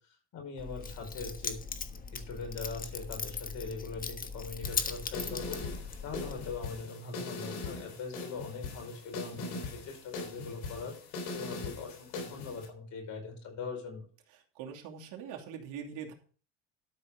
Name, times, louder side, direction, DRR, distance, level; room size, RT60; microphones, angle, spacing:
voice 1, 0.3-1.6 2.1-5.6 6.0-14.0, left 4 dB, 60° left, 2 dB, 5.4 m, -41 dB
Keys jangling, 0.6-6.6, left 5 dB, 25° left, 1.3 m, -39 dB
sound 1, 4.6-12.7, left 3 dB, 90° left, 4.0 m, -41 dB
voice 2, 14.5-16.1, right 7 dB, 70° right, 1 dB, 2.7 m, -42 dB
12.5 x 5.1 x 6.5 m, 0.42 s
supercardioid pair, 95°, 32 cm